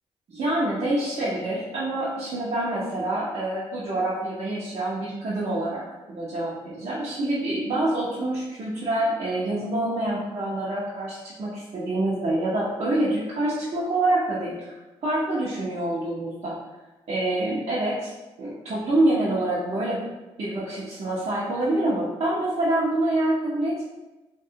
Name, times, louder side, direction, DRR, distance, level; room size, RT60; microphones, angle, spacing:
voice 1, 0.3-5.8 6.1-14.7 15.0-16.6 17.1-18.1 18.4-20.0 20.4-23.8, right 1 dB, 60° right, -8 dB, 0.7 m, -26 dB
2.6 x 2.2 x 2.7 m, 1.1 s
supercardioid pair, 55°, 12 cm